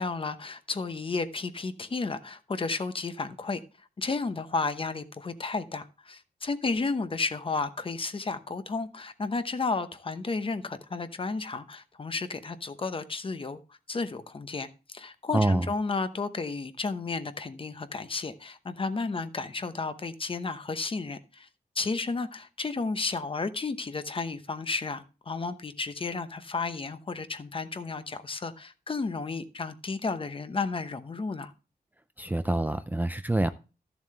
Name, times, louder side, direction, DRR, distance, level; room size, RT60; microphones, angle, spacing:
voice 1, 0.0-3.6 4.0-13.6 13.9-21.5 21.7-31.5, left 4 dB, 35° left, 0.9 m, -32 dB
voice 2, 15.3-15.7 32.2-33.5, right 2 dB, 10° right, 0.4 m, -26 dB
13.5 x 7.1 x 3.2 m
wide cardioid pair, 155°, 16 cm